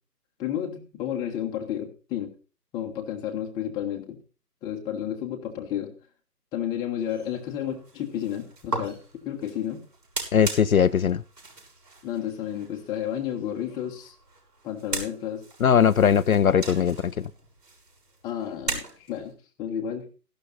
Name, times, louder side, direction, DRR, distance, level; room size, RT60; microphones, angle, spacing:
voice 1, 0.4-2.3 2.7-4.2 4.6-5.9 6.5-9.0 9.2-9.8 12.0-14.1 14.6-15.4 18.2-19.3 19.6-20.1, left 10 dB, 10° left, 1.1 m, -31 dB
sound 1, 7.0-19.3, right 3 dB, 70° right, 6.9 m, -39 dB
voice 2, 10.3-11.2 15.6-17.3, left 8 dB, 60° left, 0.6 m, -20 dB
15.0 x 12.0 x 4.0 m
figure-of-eight pair, 145°, 49 cm